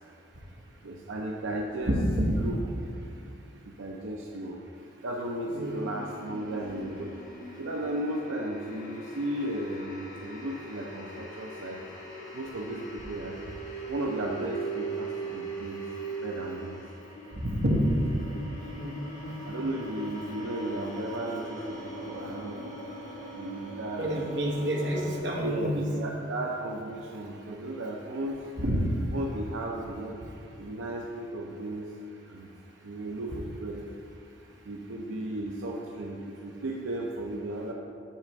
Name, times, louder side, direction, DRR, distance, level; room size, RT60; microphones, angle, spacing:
voice 1, 0.8-2.0 2.4-2.6 3.6-4.6 5.0-7.2 7.6-11.8 12.3-13.4 13.9-15.8 16.2-16.8 19.5-22.7 23.3-24.1 25.4-28.4 29.1-30.2 30.6-31.9 32.3-32.5 32.8-33.9 34.6-37.7, right 1 dB, 90° right, 0 dB, 0.6 m, -35 dB
voice 2, 1.9-2.4 5.5-5.7 17.4-18.0 18.7-18.9 19.2-19.4 24.0-25.8 28.6-28.8, equal, 65° right, -2 dB, 1.2 m, -27 dB
sound 1, 5.6-25.2, right 2 dB, 40° left, 1.3 m, -41 dB
8.5 x 3.3 x 6.2 m, 2.5 s
head